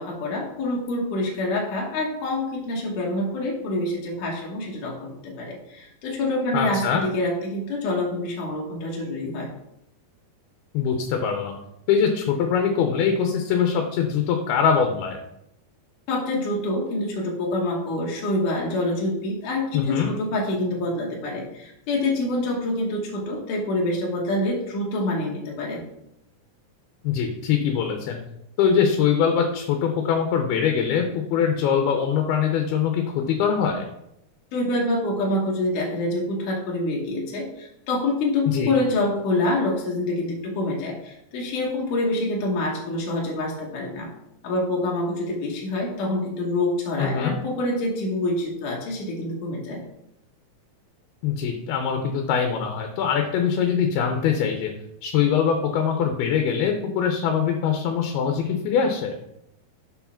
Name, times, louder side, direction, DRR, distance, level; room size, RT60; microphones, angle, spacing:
voice 1, 0.0-9.5 16.1-25.8 34.5-44.1 44.4-49.8, left 2 dB, 65° left, -2 dB, 2.4 m, -26 dB
voice 2, 6.5-7.0 10.7-11.5 11.9-15.2 19.7-20.1 27.0-28.2 28.6-33.9 38.5-38.7 47.0-47.4 51.2-54.7 55.0-59.2, left 7 dB, 85° left, 4 dB, 2.7 m, -23 dB
6.1 x 4.6 x 5.7 m, 0.81 s
omnidirectional pair, 4.3 m